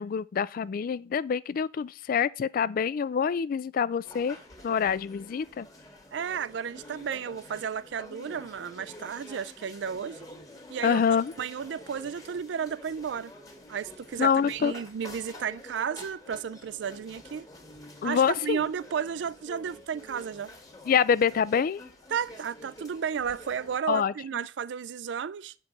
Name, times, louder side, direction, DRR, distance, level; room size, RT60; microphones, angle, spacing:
voice 1, 0.0-4.4 4.6-5.7 10.8-11.3 14.2-14.7 18.0-18.6 20.9-21.8 23.9-24.4, left 7 dB, 50° left, 0.3 m, -26 dB
sound 1, 4.0-23.8, left 1 dB, 20° left, 1.5 m, -48 dB
voice 2, 6.1-10.3 10.7-11.0 11.4-13.3 13.7-17.5 18.0-20.5 22.1-25.5, right 7 dB, 70° right, 0.4 m, -33 dB
8.0 x 4.6 x 5.3 m
head